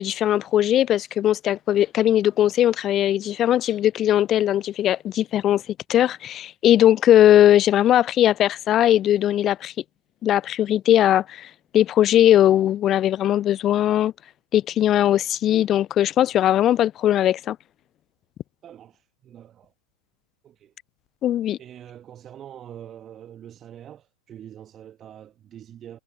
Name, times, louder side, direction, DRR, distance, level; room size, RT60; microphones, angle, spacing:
voice 1, 0.0-5.6 5.9-9.7 10.2-14.1 14.5-17.6 21.2-21.6, left 12 dB, 30° left, 0.3 m, -19 dB
voice 2, 18.6-19.7 20.4-20.7 21.6-26.0, right 10 dB, 30° right, 1.3 m, -44 dB
figure-of-eight pair, 90°, 0 cm